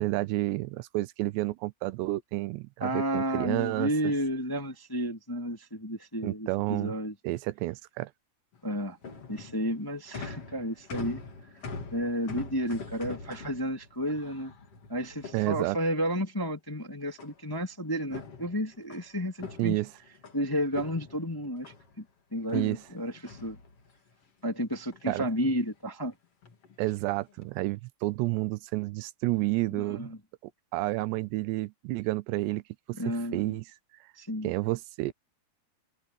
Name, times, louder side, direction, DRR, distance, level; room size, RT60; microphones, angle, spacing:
voice 1, 0.0-3.9 6.2-6.9 7.2-8.1 15.3-15.8 19.6-19.9 22.5-22.8 25.1-25.3 26.8-30.1 30.7-32.6 33.1-33.6 34.4-35.1, right 19 dB, 85° right, 2.9 m, -30 dB
voice 2, 2.8-7.1 8.6-9.0 9.3-11.2 11.9-14.5 14.9-19.8 20.3-22.0 22.3-23.6 24.4-26.1 29.7-30.2 33.0-33.6 34.2-34.5, equal, 5° left, 1.9 m, -32 dB
sound 1, 8.5-16.1 17.2-17.7 18.0-20.4 20.7-22.0 22.5-24.1 24.6-25.0 25.3-25.7 26.4-26.8 27.3-27.6, left 4 dB, 40° left, 3.2 m, -44 dB
open air
omnidirectional pair, 4.9 m